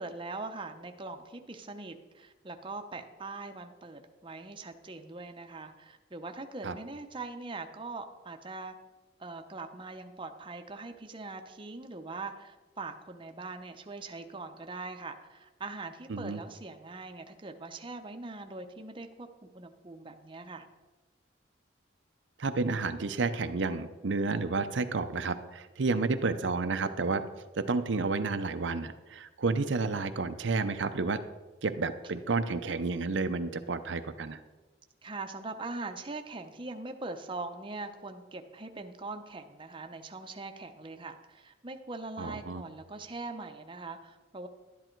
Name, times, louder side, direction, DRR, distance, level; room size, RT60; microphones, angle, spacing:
voice 1, 0.0-8.8 9.2-20.7 35.0-44.5, right 3 dB, 25° right, 6 dB, 0.7 m, -42 dB
voice 2, 22.4-27.2 27.6-31.2 31.6-34.4 42.2-42.6, right 3 dB, 70° right, 9 dB, 0.6 m, -31 dB
12.0 x 10.5 x 4.5 m, 1.2 s
head